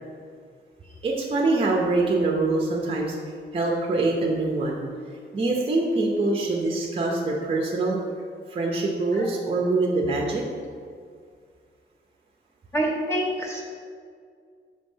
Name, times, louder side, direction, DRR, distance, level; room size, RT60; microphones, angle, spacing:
voice 1, 1.0-3.2 3.5-4.8 5.3-8.0 8.5-10.4, right 2 dB, 30° right, -1 dB, 0.6 m, -24 dB
voice 2, 12.7-13.6, right 1 dB, 15° left, -3 dB, 0.6 m, -26 dB
5.1 x 3.4 x 5.4 m, 2.1 s
wide cardioid pair, 155°, 19 cm